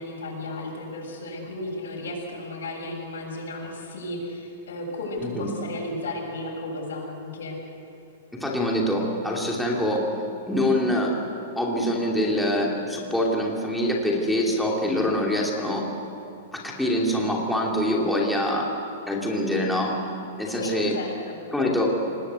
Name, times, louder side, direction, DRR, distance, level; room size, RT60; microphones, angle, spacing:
voice 1, 0.0-7.6 20.5-21.4, left 1 dB, 90° left, -1 dB, 7.6 m, -34 dB
voice 2, 8.3-10.0 10.4-11.2 11.6-15.8 16.5-18.7 19.1-20.0 20.4-21.0 21.5-22.0, left 1 dB, ahead, -2 dB, 2.9 m, -24 dB
27.0 x 20.0 x 8.2 m, 2.9 s
hypercardioid pair, 165°, 0 cm